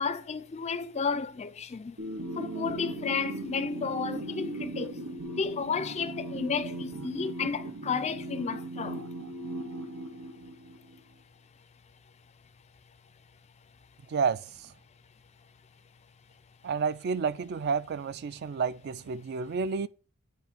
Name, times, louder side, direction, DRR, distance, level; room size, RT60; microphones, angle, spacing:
voice 1, 0.0-2.0 2.4-5.0 5.3-9.0, left 5 dB, 30° left, 0.4 m, -32 dB
sound 1, 2.0-11.0, right 1 dB, 80° right, 1.4 m, -38 dB
voice 2, 16.6-19.9, right 5 dB, 45° right, 0.3 m, -30 dB
9.1 x 3.0 x 5.1 m
head